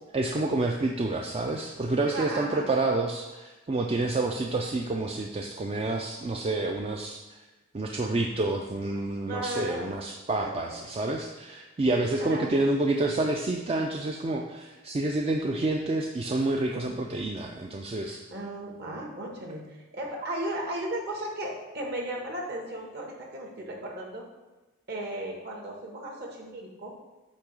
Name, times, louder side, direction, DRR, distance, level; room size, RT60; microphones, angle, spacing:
voice 1, 0.1-7.4 7.7-18.2, right 2 dB, 30° right, 2 dB, 0.4 m, -28 dB
voice 2, 2.1-2.6 9.3-9.9 10.4-10.5 12.2-12.5 16.7-17.0 18.3-24.2 24.9-26.9, right 1 dB, 55° right, -1 dB, 1.5 m, -35 dB
8.4 x 2.9 x 6.1 m, 1.2 s
head